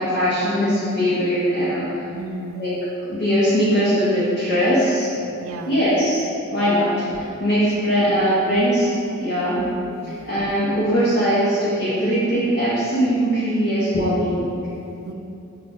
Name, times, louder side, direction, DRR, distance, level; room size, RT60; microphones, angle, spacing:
voice 1, 0.0-1.9 2.5-2.7 3.0-5.1 5.7-6.2 6.5-8.9 9.2-9.6 10.3-14.4, equal, 60° left, -9 dB, 0.7 m, -20 dB
voice 2, 2.1-2.7 5.3-5.8 8.1-8.2 9.5-10.2 15.0-15.1, right 2 dB, 75° right, 4 dB, 0.3 m, -34 dB
5.3 x 2.3 x 2.5 m, 2.8 s
head